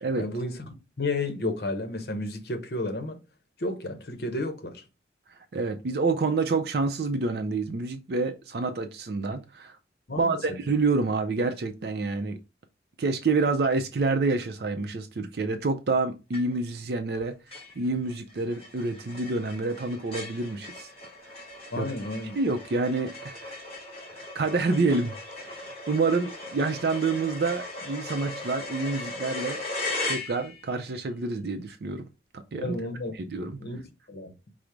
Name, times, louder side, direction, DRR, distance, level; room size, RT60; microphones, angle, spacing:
voice 1, 0.2-3.2 3.6-4.8 10.1-10.6 21.7-22.4 32.6-33.1 33.6-33.8 34.1-34.3, left 2 dB, 60° left, 0.8 m, -32 dB
voice 2, 5.5-9.7 10.2-12.4 13.0-17.3 17.8-20.9 21.8-21.9 22.4-23.6 24.1-25.1 25.4-29.6 30.1-32.0 32.5-32.8 33.1-33.6, right 3 dB, 60° right, 0.4 m, -28 dB
sound 1, 16.3-16.8 17.1-17.2 17.5-30.8, left 2 dB, 30° left, 1.6 m, -38 dB
5.0 x 2.0 x 4.5 m
head